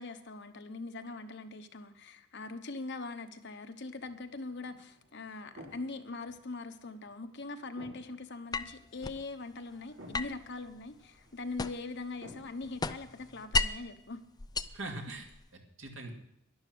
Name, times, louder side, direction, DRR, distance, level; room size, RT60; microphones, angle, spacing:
voice 1, 0.0-14.2, left 3 dB, 60° left, 8 dB, 1.1 m, -42 dB
sound 1, 3.9-14.0, equal, 90° right, 4.7 m, -57 dB
sound 2, 8.5-9.2 10.1-12.0 12.3-13.9 14.4-15.5, left 4 dB, 20° left, 0.4 m, -35 dB
voice 2, 14.7-16.1, right 2 dB, 70° right, 1 dB, 2.6 m, -42 dB
12.0 x 11.0 x 6.2 m, 0.76 s
head